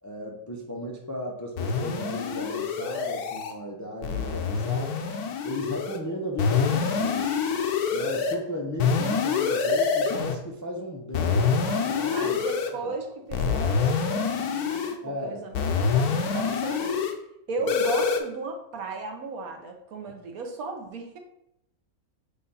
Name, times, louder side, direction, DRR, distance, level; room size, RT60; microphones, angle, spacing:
voice 1, 0.0-5.0 5.4-7.3 7.9-12.3 12.7-12.9 15.0-15.4 16.1-16.5, equal, 20° left, 0 dB, 0.5 m, -35 dB
sound 1, 1.6-3.5 4.0-6.0 6.4-8.4 8.8-10.4 11.1-12.7 13.3-15.0 15.5-17.1 17.7-18.2, left 5 dB, 85° left, 1.2 m, -26 dB
voice 2, 12.1-15.6 15.9-17.0 17.5-21.2, right 3 dB, 70° right, 3 dB, 1.3 m, -35 dB
6.7 x 2.6 x 5.5 m, 0.81 s
omnidirectional pair, 1.6 m